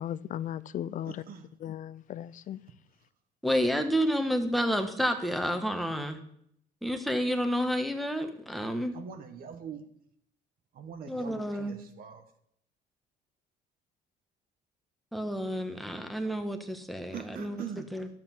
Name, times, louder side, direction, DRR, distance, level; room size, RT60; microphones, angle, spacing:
voice 1, 0.0-1.2 1.6-2.6, left 11 dB, 50° left, 0.5 m, -36 dB
voice 2, 1.0-1.5 8.9-9.8 10.7-12.2 17.1-17.9, right 7 dB, 60° right, 1.5 m, -42 dB
voice 3, 3.4-6.2 6.8-9.0 11.1-11.8 15.1-17.6 17.9-18.1, equal, ahead, 1.5 m, -30 dB
11.5 x 7.7 x 6.0 m
cardioid pair, 110°, 17 cm